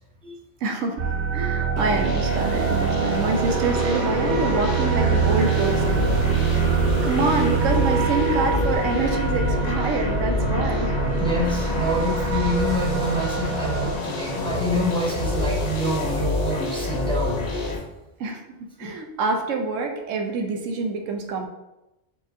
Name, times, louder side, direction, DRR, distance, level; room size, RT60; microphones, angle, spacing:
voice 1, 0.6-6.0 7.0-10.9 18.2-21.5, right 3 dB, 80° right, 4 dB, 1.0 m, -26 dB
sound 1, 1.0-13.9, right 6 dB, 55° right, 0.5 m, -24 dB
sound 2, 1.8-17.8, left 3 dB, 40° left, 0.7 m, -27 dB
sound 3, 10.9-16.5, left 1 dB, 70° left, 1.8 m, -39 dB
voice 2, 11.2-17.4 18.8-18.9, equal, 5° left, -4 dB, 0.7 m, -27 dB
4.7 x 4.0 x 2.6 m, 0.95 s
omnidirectional pair, 1.3 m